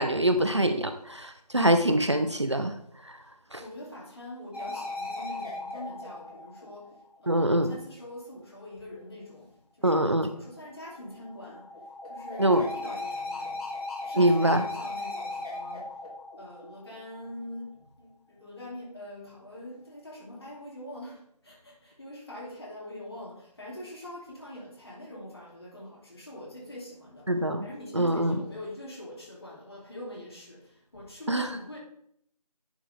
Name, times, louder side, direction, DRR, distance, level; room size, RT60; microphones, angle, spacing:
voice 1, 0.0-2.7 3.5-3.6 7.3-7.8 9.8-10.3 12.4-12.7 14.2-14.7 27.3-27.7 27.9-28.4 31.3-31.5, right 1 dB, 45° right, 8 dB, 0.5 m, -24 dB
voice 2, 3.6-6.9 7.2-11.7 12.1-13.7 14.0-15.9 16.4-17.7 18.0-27.3 27.6-30.7 30.9-31.8, left 1 dB, 40° left, -3 dB, 2.5 m, -43 dB
sound 1, 4.5-7.3 10.8-17.3, left 2 dB, 70° left, 2.6 m, -37 dB
10.0 x 3.6 x 4.9 m, 0.69 s
figure-of-eight pair, 175°, 20 cm